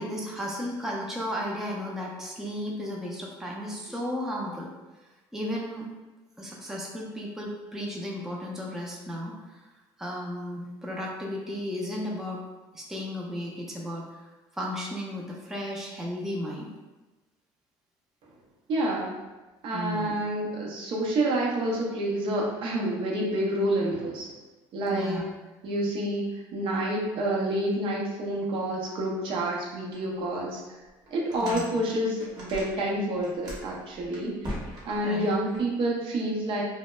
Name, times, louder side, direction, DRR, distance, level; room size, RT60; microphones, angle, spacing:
voice 1, 0.0-4.7 5.3-5.9 6.4-9.6 10.0-12.4 12.7-14.0 14.5-16.7 19.7-20.3 24.9-25.2 31.4-31.6 35.0-35.3, equal, 5° right, -3 dB, 0.4 m, -34 dB
voice 2, 18.7-19.1 19.6-24.3 24.7-25.2 25.6-26.2 26.5-30.6 31.1-34.3 34.8-36.6, right 1 dB, 60° right, -3 dB, 0.6 m, -28 dB
sound 1, 29.9-30.0 30.5-30.6 31.1-32.9 33.1-35.6, equal, 40° right, 0.9 m, -39 dB
2.2 x 2.0 x 3.0 m, 1.1 s
cardioid pair, 105°, 10 cm